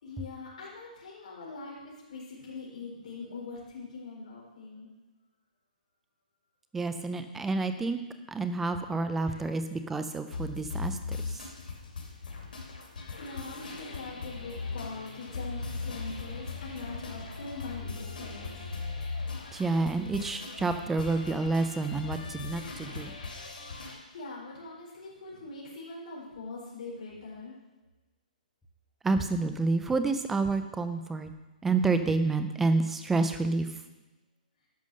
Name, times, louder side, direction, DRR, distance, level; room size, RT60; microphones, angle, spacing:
voice 1, 0.0-4.9 9.3-9.4 13.2-18.6 23.9-27.6, left 3 dB, 50° left, -5 dB, 4.1 m, -42 dB
voice 2, 6.7-8.0 8.3-11.4 19.5-23.1 29.0-31.3 31.6-33.7, right 3 dB, 5° right, 9 dB, 0.3 m, -29 dB
sound 1, 10.3-24.0, left 4 dB, 90° left, 3.1 m, -39 dB
11.5 x 5.6 x 6.4 m, 1.1 s
hypercardioid pair, 175°, 5 cm